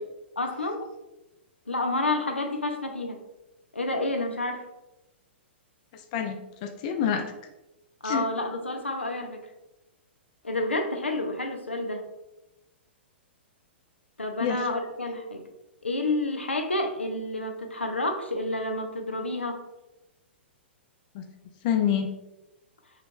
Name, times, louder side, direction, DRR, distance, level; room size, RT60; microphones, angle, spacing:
voice 1, 0.4-0.8 1.7-3.2 3.7-4.6 8.0-9.4 10.4-12.0 14.2-15.4 15.8-19.6, left 2 dB, 80° left, 5 dB, 0.6 m, -29 dB
voice 2, 5.9-7.3 8.0-8.2 14.4-14.7 21.1-21.3 21.6-22.1, left 8 dB, 40° left, 5 dB, 0.4 m, -27 dB
5.7 x 3.0 x 2.4 m, 0.98 s
figure-of-eight pair, 110°, 6 cm